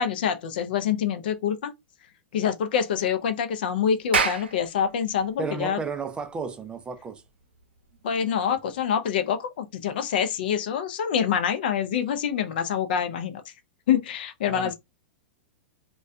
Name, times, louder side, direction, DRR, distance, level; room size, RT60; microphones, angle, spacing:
voice 1, 0.0-1.7 2.3-5.8 8.0-13.4 13.9-14.7, left 8 dB, 65° left, 0.5 m, -26 dB
Clapping, 4.0-8.8, right 5 dB, 85° right, 0.6 m, -31 dB
voice 2, 5.4-7.2 14.5-14.7, right 4 dB, 15° right, 0.4 m, -33 dB
2.3 x 2.2 x 2.5 m
hypercardioid pair, 110°, 6 cm